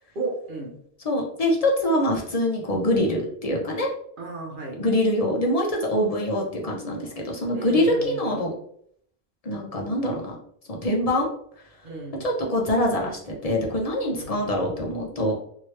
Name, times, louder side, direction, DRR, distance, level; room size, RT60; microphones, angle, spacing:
voice 1, 0.2-0.7 4.2-4.8 7.5-8.3 11.8-12.2 14.2-14.5, right 3 dB, 60° right, 1 dB, 0.9 m, -33 dB
voice 2, 1.0-3.9 4.8-8.5 9.4-10.4 10.7-11.3 12.2-15.3, left 1 dB, 40° left, -1 dB, 0.8 m, -24 dB
3.1 x 2.7 x 3.1 m, 0.65 s
omnidirectional pair, 1.0 m